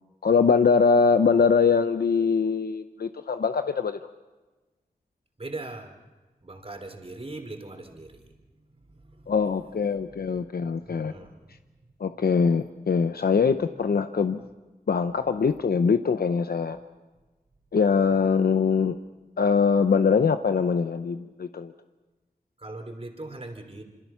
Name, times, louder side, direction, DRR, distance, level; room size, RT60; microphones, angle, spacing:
voice 1, 0.2-4.0 9.3-11.1 12.0-14.4 14.9-16.8 17.7-19.0 19.4-21.7, left 5 dB, 80° left, 9 dB, 0.7 m, -22 dB
voice 2, 5.4-6.0 6.4-8.3 8.8-9.3 10.8-11.6 22.6-23.8, right 2 dB, 40° right, 5 dB, 3.4 m, -40 dB
27.0 x 25.5 x 5.8 m, 1.2 s
wide cardioid pair, 85°, 16 cm